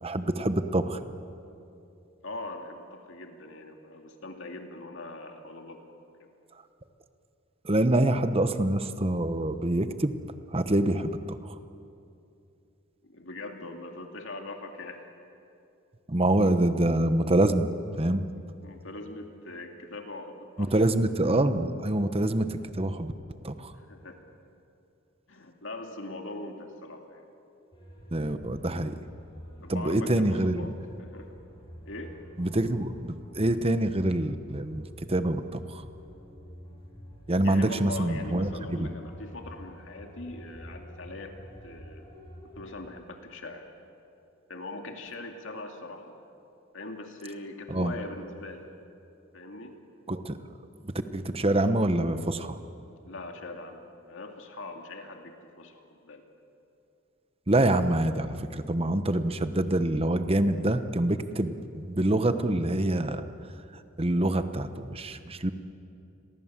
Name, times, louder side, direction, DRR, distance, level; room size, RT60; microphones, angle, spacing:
voice 1, 0.0-1.0 7.6-10.1 10.5-11.6 16.1-17.7 18.0-18.2 20.6-23.1 23.4-23.7 28.1-29.0 29.7-30.7 32.4-35.8 37.3-38.9 47.7-47.9 50.1-50.4 50.8-52.6 57.5-63.3 64.0-65.5, right 1 dB, 30° right, 10 dB, 1.1 m, -26 dB
voice 2, 2.2-5.8 6.2-6.3 13.0-15.1 18.6-20.7 23.7-24.2 25.3-27.3 29.6-31.4 31.9-32.2 37.4-42.1 42.4-43.6 44.5-46.2 46.7-48.7 49.3-49.8 53.0-56.2, left 2 dB, 65° left, 3 dB, 2.4 m, -41 dB
sound 1, 27.7-42.6, equal, 25° left, 6.9 m, -47 dB
30.0 x 22.5 x 7.5 m, 2.7 s
head